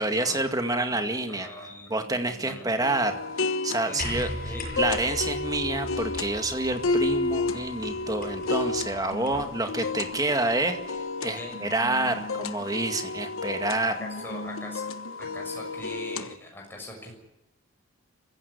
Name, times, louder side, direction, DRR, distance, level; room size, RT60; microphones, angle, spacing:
voice 1, 0.0-1.5 1.9-3.2 3.6-4.3 4.8-13.9, right 2 dB, 15° right, 6 dB, 2.1 m, -28 dB
voice 2, 1.3-2.9 3.8-4.1 4.4-4.7 9.2-9.5 11.3-11.6 13.8-14.8 15.2-17.1, left 1 dB, 10° left, 0 dB, 6.6 m, -42 dB
sound 1, 2.8-16.4, left 3 dB, 80° left, 1.2 m, -32 dB
sound 2, 2.8-15.8, left 3 dB, 65° right, 4.1 m, -42 dB
sound 3, 4.0-9.6 10.7-10.8, left 1 dB, 40° left, 7.7 m, -39 dB
24.0 x 16.0 x 9.9 m, 1.0 s
head